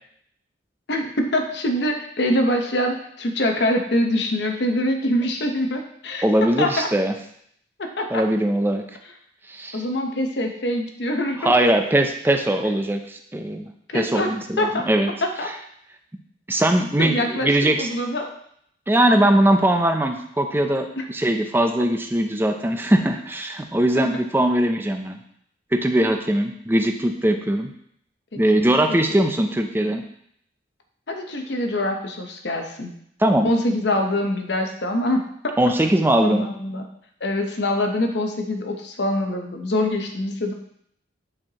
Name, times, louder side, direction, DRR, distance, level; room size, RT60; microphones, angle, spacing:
voice 1, 0.9-6.9 7.8-8.2 9.7-11.5 13.9-14.9 15.2-15.5 17.0-18.3 21.0-21.1 28.3-28.6 29.1-29.2 31.1-32.9 33.4-35.5 36.2-36.9 37.2-40.5, left 1 dB, 60° left, 4 dB, 0.8 m, -24 dB
voice 2, 6.2-7.1 8.1-8.8 9.5-9.8 11.4-13.6 13.9-15.1 16.5-17.9 18.9-25.2 25.7-27.7 28.4-30.0 33.2-33.5 35.6-36.4, right 1 dB, 10° right, 5 dB, 0.4 m, -20 dB
8.7 x 4.4 x 2.9 m, 0.70 s
head